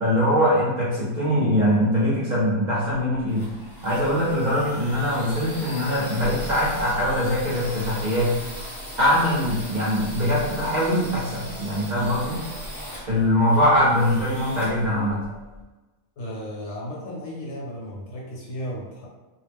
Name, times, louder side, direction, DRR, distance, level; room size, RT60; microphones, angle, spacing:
voice 1, 0.0-3.5 3.8-8.3 9.0-12.4 13.1-15.2, equal, 55° right, -7 dB, 0.5 m, -22 dB
sound 1, 2.9-15.6, equal, ahead, 0.7 m, -38 dB
voice 2, 16.2-19.1, equal, 60° left, -4 dB, 0.8 m, -34 dB
2.4 x 2.0 x 3.3 m, 1.2 s
omnidirectional pair, 1.5 m